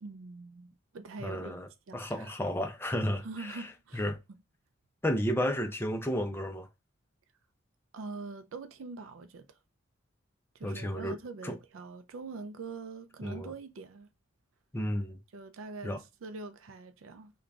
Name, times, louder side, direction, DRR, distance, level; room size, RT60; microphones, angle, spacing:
voice 1, 0.0-1.6 1.9-2.3 3.2-4.1 7.9-9.6 10.5-14.1 15.3-17.3, right 3 dB, 70° right, 0.4 m, -44 dB
voice 2, 1.2-1.7 1.9-3.7 3.9-4.2 5.0-6.7 10.6-11.2 11.4-11.6 13.2-13.5 14.7-15.2 15.8-16.0, equal, 10° left, 0.5 m, -32 dB
3.7 x 2.3 x 3.5 m
head